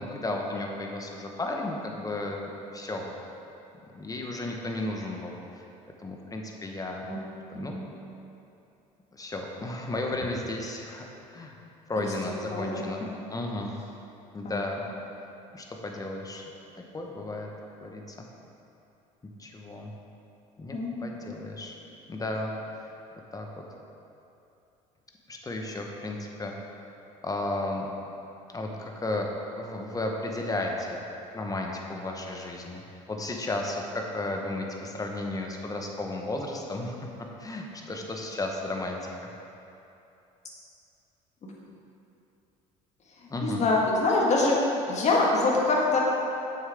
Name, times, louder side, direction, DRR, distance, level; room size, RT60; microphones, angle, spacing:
voice 1, 0.0-3.1 3.9-5.4 6.0-7.1 7.5-7.8 9.1-11.0 11.3-11.5 11.9-13.0 13.3-13.7 14.3-14.8 15.5-16.4 16.8-17.5 17.8-18.2 19.4-19.9 20.6-21.8 22.1-22.5 23.3-23.6 25.3-26.5 27.2-27.9 28.5-29.3 29.5-31.0 31.3-32.8 33.1-37.0 37.4-39.0 43.3-43.6, left 2 dB, 20° left, 1 dB, 1.1 m, -33 dB
voice 2, 12.5-12.8 14.4-14.6 20.7-21.3 43.4-44.6 44.9-46.0, left 3 dB, 40° left, -3 dB, 1.6 m, -25 dB
7.1 x 6.6 x 3.5 m, 2.8 s
supercardioid pair, 80°, 17 cm